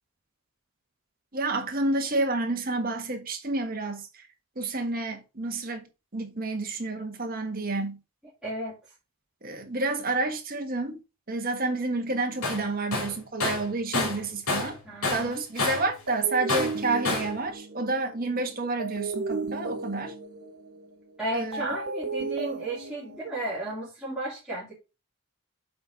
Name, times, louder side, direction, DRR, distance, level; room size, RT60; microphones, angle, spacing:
voice 1, 1.3-4.1 4.5-5.9 6.1-8.0 9.4-11.0 11.3-14.8 15.1-20.1 21.3-21.6, right 2 dB, 40° right, 1.6 m, -29 dB
voice 2, 8.4-8.8 14.8-15.5 21.2-24.7, right 1 dB, 5° right, 3.0 m, -34 dB
Tools, 12.4-12.6 12.9-14.8 15.0-15.9 16.5-17.4, left 3 dB, 80° left, 3.1 m, -29 dB
sound 1, 16.1-23.7, right 3 dB, 80° right, 1.3 m, -35 dB
7.8 x 4.2 x 5.0 m
head